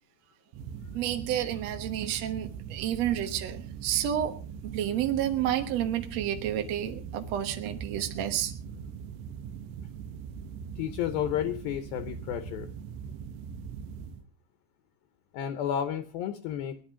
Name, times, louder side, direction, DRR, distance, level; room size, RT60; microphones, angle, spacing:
sound 1, 0.5-14.2, right 7 dB, 85° right, 3.2 m, -41 dB
voice 1, 0.9-4.4 4.7-8.5, right 11 dB, 70° right, 1.6 m, -30 dB
voice 2, 10.8-12.7 15.3-16.8, left 10 dB, 75° left, 2.5 m, -31 dB
19.5 x 11.0 x 5.0 m
omnidirectional pair, 4.9 m